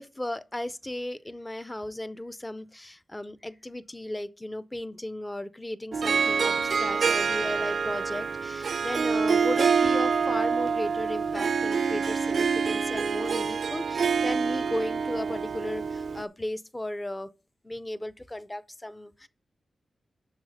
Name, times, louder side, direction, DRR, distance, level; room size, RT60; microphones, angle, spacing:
voice 1, 0.0-17.3 17.6-19.3, left 1 dB, 10° left, 0.5 m, -35 dB
Harp, 5.9-16.2, right 6 dB, 60° right, 0.4 m, -26 dB
11.5 x 4.0 x 6.3 m
wide cardioid pair, 155°, 0 cm